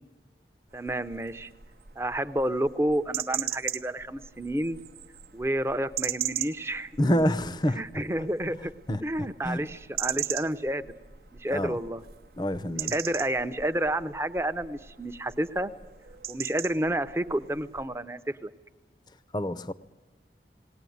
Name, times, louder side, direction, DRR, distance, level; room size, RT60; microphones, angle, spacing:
voice 1, 0.7-1.5 2.0-4.8 5.3-6.9 7.7-8.7 9.0-10.9 11.4-12.0 12.9-15.7 16.3-18.5, right 1 dB, 15° right, 11 dB, 0.7 m, -30 dB
sound 1, 0.7-17.9, right 11 dB, 55° right, 0.7 m, -39 dB
voice 2, 7.0-8.0 8.9-9.0 9.4-9.7 11.5-11.8 12.4-12.9 19.3-19.7, equal, 25° left, 15 dB, 0.7 m, -27 dB
19.5 x 18.5 x 9.4 m, 1.2 s
head